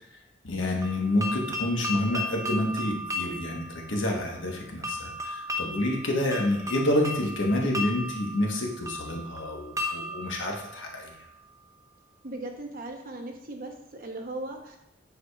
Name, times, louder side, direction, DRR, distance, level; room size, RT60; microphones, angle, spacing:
voice 1, 0.4-11.1, left 1 dB, 75° left, 0 dB, 1.2 m, -28 dB
sound 1, 0.8-11.6, left 1 dB, 15° right, 0.6 m, -36 dB
voice 2, 12.2-14.8, right 2 dB, 50° right, 3 dB, 0.9 m, -38 dB
9.1 x 4.8 x 2.3 m, 0.86 s
head